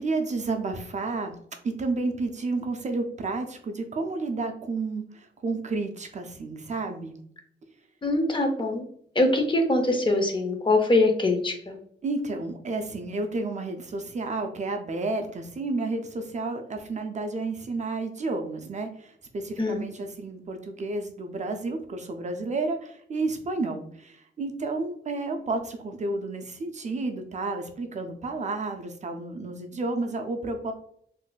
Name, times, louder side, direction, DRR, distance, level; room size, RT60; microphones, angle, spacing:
voice 1, 0.0-1.4 1.6-7.1 12.0-30.7, right 3 dB, 40° right, 5 dB, 0.4 m, -31 dB
voice 2, 8.0-8.8 9.2-11.7 19.6-19.8, left 2 dB, 25° left, 4 dB, 0.5 m, -23 dB
3.8 x 2.6 x 2.2 m, 0.65 s
wide cardioid pair, 135°, 19 cm